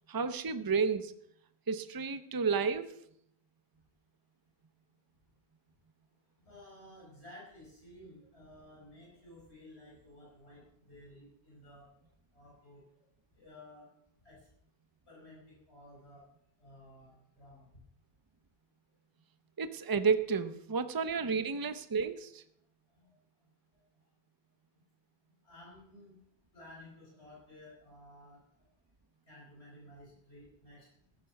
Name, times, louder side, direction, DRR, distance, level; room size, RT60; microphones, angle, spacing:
voice 1, 0.1-1.1 1.7-2.9 19.6-22.4, right 5 dB, 25° right, 11 dB, 0.7 m, -31 dB
voice 2, 6.5-11.9 12.3-12.8 13.3-13.9 14.2-14.4 15.1-16.2 16.6-17.7 23.0-23.1 25.4-26.2 26.5-28.4 29.3-30.9, left 1 dB, 75° left, -5 dB, 5.3 m, -54 dB
14.5 x 11.5 x 5.9 m, 0.72 s
omnidirectional pair, 1.1 m